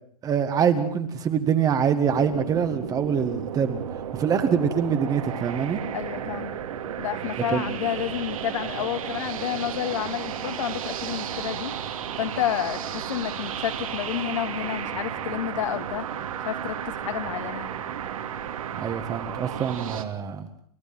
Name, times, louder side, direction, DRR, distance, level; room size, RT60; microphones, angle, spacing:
voice 1, 0.2-3.8 4.2-5.8 7.5-7.6 18.8-20.5, right 7 dB, 20° right, 8 dB, 1.8 m, -24 dB
sound 1, 2.0-20.0, right 9 dB, 60° right, 2.9 m, -33 dB
voice 2, 5.9-6.6 7.0-11.8 12.2-16.1 16.4-17.7, left 11 dB, 55° left, 8 dB, 2.3 m, -30 dB
30.0 x 12.5 x 8.8 m, 0.65 s
hypercardioid pair, 130°, 19 cm